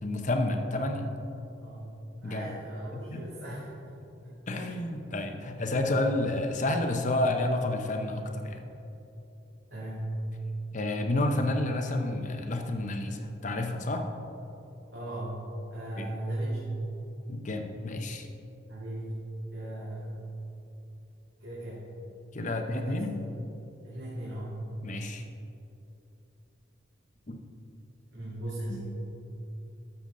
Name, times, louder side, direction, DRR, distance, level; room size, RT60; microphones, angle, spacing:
voice 1, 0.0-1.0 2.2-2.6 2.9-3.2 4.5-8.6 10.7-14.1 16.0-16.1 17.3-18.3 22.3-23.1 24.8-25.3 27.3-27.4 28.7-28.9, left 2 dB, 40° left, 4 dB, 0.8 m, -30 dB
voice 2, 1.6-1.9 2.2-3.7 4.2-4.9 9.7-10.1 14.9-15.4 15.7-16.6 18.7-19.2 19.5-20.2 21.4-21.9 22.5-23.0 23.8-24.6 28.1-28.9, right 1 dB, 65° right, -9 dB, 2.1 m, -38 dB
12.5 x 7.0 x 3.8 m, 2.9 s
head